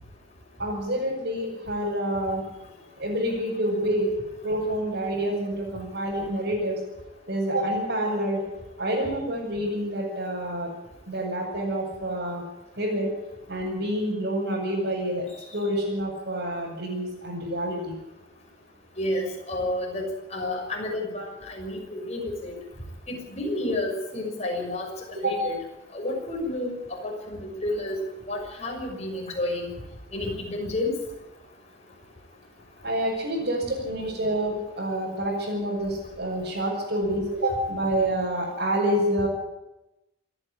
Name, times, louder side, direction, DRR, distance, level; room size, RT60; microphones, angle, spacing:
voice 1, 0.6-2.4 3.0-4.1 4.4-6.8 7.3-8.4 8.8-10.7 11.1-12.4 12.8-13.1 13.5-15.2 15.5-17.9 25.1-25.4 32.8-39.3, right 1 dB, 60° right, -6 dB, 6.3 m, -27 dB
voice 2, 19.0-22.6 23.1-24.9 25.2-25.5 25.9-28.0 28.2-29.7 30.1-30.9, left 1 dB, 35° left, 0 dB, 6.5 m, -30 dB
27.0 x 11.0 x 10.0 m, 0.96 s
head